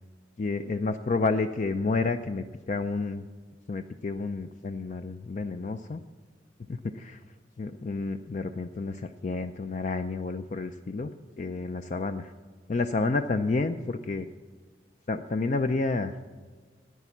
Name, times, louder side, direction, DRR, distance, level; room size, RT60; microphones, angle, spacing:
voice 1, 0.4-3.2 3.7-6.0 6.7-7.2 7.6-12.3 12.7-14.3 15.1-16.1, left 3 dB, 40° left, 9 dB, 0.4 m, -30 dB
9.9 x 9.3 x 7.1 m, 1.5 s
head